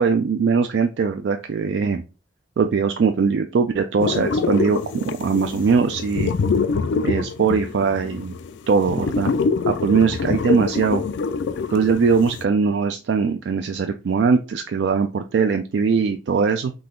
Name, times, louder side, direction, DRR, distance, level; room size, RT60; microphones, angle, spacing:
voice 1, 0.0-2.0 2.6-6.3 7.0-8.3 8.7-9.3 9.7-11.0 11.7-16.7, right 5 dB, 75° right, 6 dB, 0.4 m, -21 dB
sound 1, 4.0-12.4, left 5 dB, 80° left, 0.3 m, -25 dB
3.9 x 2.8 x 3.6 m, 0.30 s
head